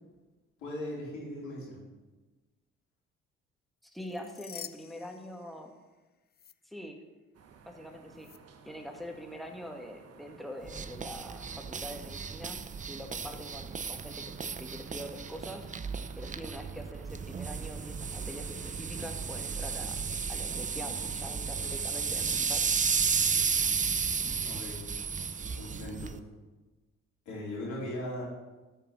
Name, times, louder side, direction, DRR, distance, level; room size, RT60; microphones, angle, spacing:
voice 1, 0.6-1.8 24.4-24.8 25.5-26.2 27.3-28.2, left 1 dB, 80° left, -5 dB, 4.0 m, -38 dB
voice 2, 3.8-5.7 6.6-7.0 7.6-8.3 8.6-12.6 12.9-15.7 16.2-20.0 20.3-22.6, equal, ahead, 2 dB, 2.0 m, -44 dB
sound 1, 3.9-6.0 6.3-6.5 8.2-8.4, left 8 dB, 35° left, 0.5 m, -48 dB
sound 2, 7.3-25.9, right 5 dB, 60° right, 1.2 m, -54 dB
sound 3, 10.6-26.2, right 6 dB, 25° right, 0.6 m, -33 dB
13.0 x 4.7 x 6.5 m, 1.2 s
hypercardioid pair, 55°, 29 cm